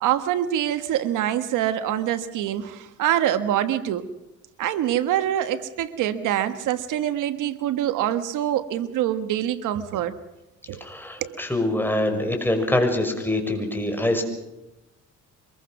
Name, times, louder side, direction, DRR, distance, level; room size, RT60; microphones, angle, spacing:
voice 1, 0.0-4.1 4.6-10.1 10.7-10.8 11.2-11.4, right 11 dB, 90° right, 11 dB, 1.4 m, -25 dB
voice 2, 10.8-14.2, left 1 dB, 5° left, 4 dB, 6.0 m, -24 dB
25.0 x 21.5 x 6.0 m, 0.96 s
cardioid pair, 90°, 30 cm